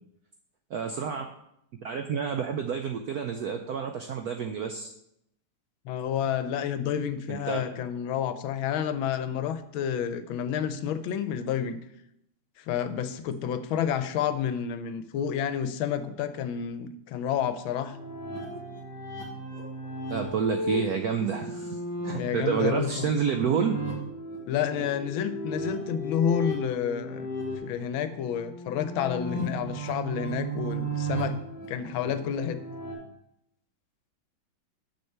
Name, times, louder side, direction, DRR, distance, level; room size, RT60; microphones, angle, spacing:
voice 1, 0.7-1.3 1.8-4.9 7.3-7.6 20.1-21.8 22.0-23.8, right 6 dB, 80° right, 5 dB, 0.8 m, -29 dB
voice 2, 5.8-11.8 12.6-18.0 22.2-23.1 24.5-27.3 27.6-31.4 31.7-32.6, left 8 dB, 85° left, 12 dB, 1.4 m, -30 dB
sound 1, 17.9-32.9, right 1 dB, 55° right, 2.5 m, -35 dB
7.1 x 6.5 x 4.4 m, 0.78 s
omnidirectional pair, 2.2 m